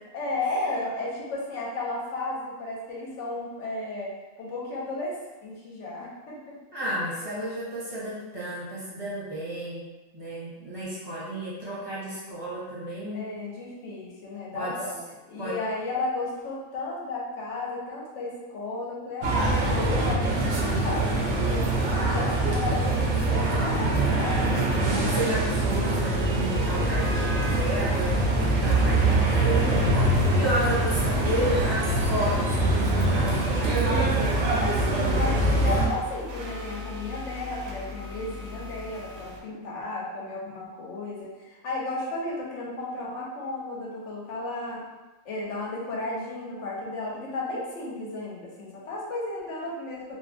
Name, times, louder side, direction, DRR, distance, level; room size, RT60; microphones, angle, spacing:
voice 1, 0.1-6.5 13.1-15.0 15.3-24.7 29.5-30.6 33.6-34.0 34.6-44.8 45.2-50.2, left 2 dB, 65° left, -4 dB, 0.8 m, -34 dB
voice 2, 6.7-9.9 10.1-13.3 14.5-14.8 15.4-15.6 25.0-34.4, right 1 dB, 25° right, -9 dB, 0.7 m, -32 dB
sound 1, 19.2-35.9, right 2 dB, 65° right, 0.8 m, -24 dB
sound 2, 25.9-39.4, left 1 dB, 85° right, 1.0 m, -37 dB
2.7 x 2.1 x 2.5 m, 1.2 s
omnidirectional pair, 1.4 m